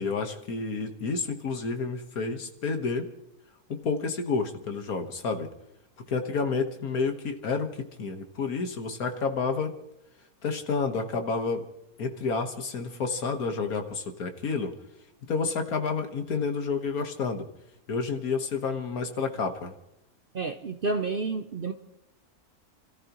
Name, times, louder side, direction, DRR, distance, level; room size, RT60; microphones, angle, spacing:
voice 1, 0.0-3.1 3.7-5.5 6.1-9.7 10.4-11.6 12.0-14.7 15.3-17.5 17.9-19.7, left 4 dB, 70° left, 1.9 m, -30 dB
voice 2, 20.3-21.7, right 3 dB, 50° right, 0.7 m, -30 dB
30.0 x 14.0 x 3.0 m
omnidirectional pair, 1.6 m